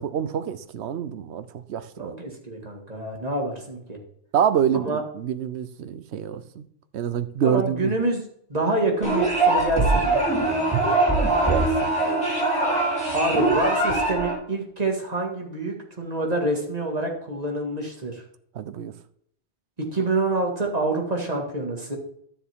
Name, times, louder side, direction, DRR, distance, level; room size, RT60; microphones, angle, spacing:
voice 1, 0.0-2.1 4.3-6.6 6.9-7.9 11.4-11.9 18.5-18.9, right 8 dB, 85° right, 13 dB, 1.0 m, -26 dB
voice 2, 2.0-4.0 4.8-5.0 7.4-8.2 8.5-10.2 13.1-18.2 19.8-22.0, right 2 dB, 35° right, 1 dB, 2.0 m, -27 dB
sound 1, 9.0-14.3, right 2 dB, 5° left, 3.0 m, -22 dB
12.5 x 7.0 x 3.6 m, 0.66 s
omnidirectional pair, 1.1 m